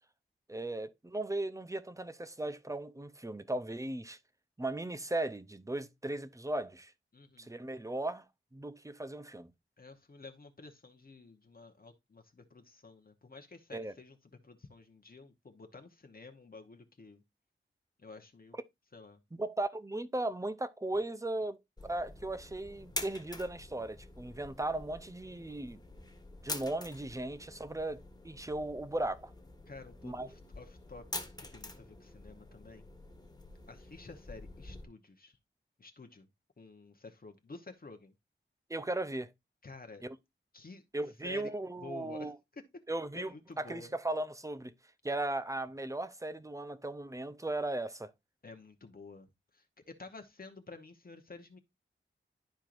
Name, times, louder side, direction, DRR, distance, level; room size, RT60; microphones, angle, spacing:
voice 1, 0.5-4.2 4.6-6.9 7.4-8.2 8.5-9.5 13.7-13.9 19.4-25.8 26.4-29.3 30.0-30.3 38.7-39.3 40.0-40.1 40.9-42.4 42.9-44.7 45.0-48.1, right 2 dB, 15° right, 0.6 m, -37 dB
voice 2, 7.1-7.5 9.8-17.2 18.0-18.6 18.9-19.2 29.7-31.0 31.4-32.9 33.7-35.4 35.8-36.3 36.6-38.1 39.6-40.0 40.5-40.8 41.2-42.6 43.1-43.9 48.4-51.6, left 3 dB, 45° left, 1.0 m, -51 dB
sound 1, 21.8-34.8, left 2 dB, 20° left, 1.5 m, -46 dB
11.5 x 4.5 x 2.5 m
wide cardioid pair, 90°, 21 cm